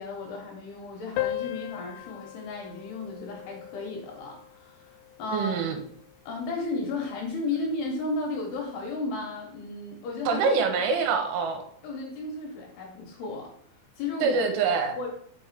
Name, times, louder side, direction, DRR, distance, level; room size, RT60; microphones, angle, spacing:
voice 1, 0.0-5.5 6.3-10.4 11.8-13.5 14.0-14.4 15.0-15.1, left 3 dB, 70° left, 0 dB, 2.8 m, -34 dB
sound 1, 1.2-6.1, left 14 dB, 90° left, 3.2 m, -38 dB
voice 2, 5.3-5.8 10.3-11.6 14.2-15.0, right 5 dB, 80° right, 6 dB, 3.4 m, -25 dB
6.2 x 5.5 x 4.9 m, 0.63 s
omnidirectional pair, 5.7 m